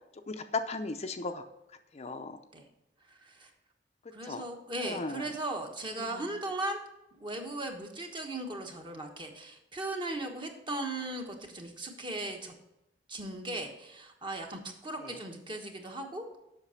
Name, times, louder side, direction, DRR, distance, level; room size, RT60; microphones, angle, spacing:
voice 1, 0.3-1.4 1.9-2.4 4.2-4.5 4.8-5.3 5.9-6.4 15.0-15.2, left 3 dB, 40° left, 7 dB, 0.6 m, -37 dB
voice 2, 3.1-3.5 4.1-6.8 7.2-12.5 13.1-16.4, right 2 dB, 30° right, 3 dB, 1.2 m, -38 dB
8.1 x 6.0 x 5.7 m, 0.91 s
head